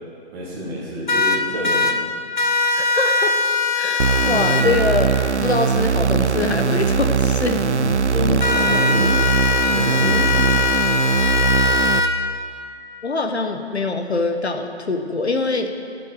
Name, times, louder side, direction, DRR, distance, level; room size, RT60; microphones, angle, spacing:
voice 1, 0.3-2.0 7.8-9.2 9.7-10.5, equal, 5° right, -6 dB, 1.2 m, -27 dB
sound 1, 1.1-1.9 2.4-4.6 8.4-12.1, left 4 dB, 40° left, 1.1 m, -20 dB
voice 2, 2.8-3.3 3.7-7.7 13.0-15.7, left 3 dB, 70° left, 5 dB, 1.3 m, -23 dB
sound 2, 4.0-12.0, right 6 dB, 85° right, 0.7 m, -20 dB
12.0 x 7.6 x 7.9 m, 2.5 s
figure-of-eight pair, 160°, 34 cm